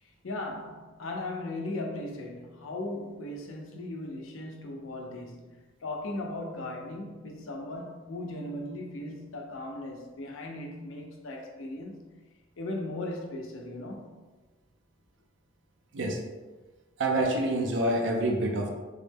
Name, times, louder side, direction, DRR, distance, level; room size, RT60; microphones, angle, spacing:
voice 1, 0.0-12.1 12.6-14.2, left 2 dB, 90° left, 0.6 m, -38 dB
voice 2, 17.0-18.7, right 1 dB, 65° right, 0.5 m, -27 dB
3.6 x 2.1 x 3.4 m
head